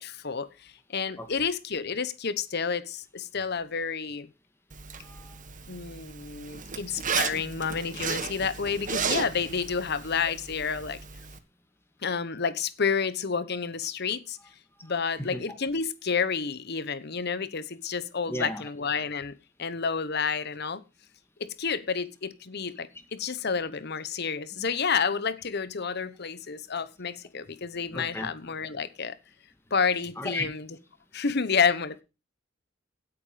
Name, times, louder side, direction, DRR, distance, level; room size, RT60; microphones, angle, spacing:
voice 1, 0.0-4.3 5.7-11.0 12.0-14.4 14.8-19.3 19.6-20.8 21.4-29.2 29.7-30.7 31.1-32.0, left 5 dB, 60° left, 1.0 m, -30 dB
Zipper (clothing), 4.7-11.4, right 6 dB, 45° right, 1.6 m, -34 dB
voice 2, 18.3-18.6 27.9-28.3 30.2-30.5, left 1 dB, 15° left, 2.4 m, -34 dB
17.0 x 8.6 x 5.0 m
head